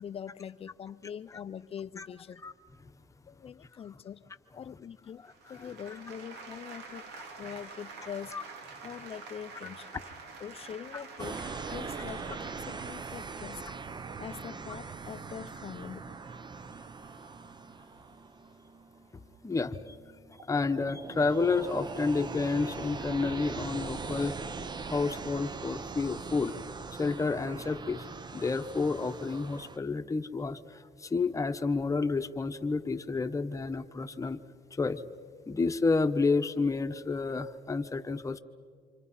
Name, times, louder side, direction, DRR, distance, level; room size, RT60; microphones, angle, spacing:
voice 1, 0.0-2.4 3.3-4.2 4.6-7.1 7.4-8.4 8.8-9.9 10.4-11.4 11.7-13.6 14.2-16.2, left 8 dB, 35° left, 0.5 m, -43 dB
sound 1, 5.3-13.3, right 4 dB, 85° right, 2.1 m, -47 dB
sound 2, 11.2-29.8, right 4 dB, 25° right, 0.7 m, -41 dB
voice 2, 19.4-20.0 20.3-24.5 24.9-26.5 27.0-28.1 28.3-34.4 34.7-35.0 35.5-38.4, left 4 dB, 20° left, 1.0 m, -30 dB
28.0 x 26.0 x 5.7 m
cardioid pair, 110°, 17 cm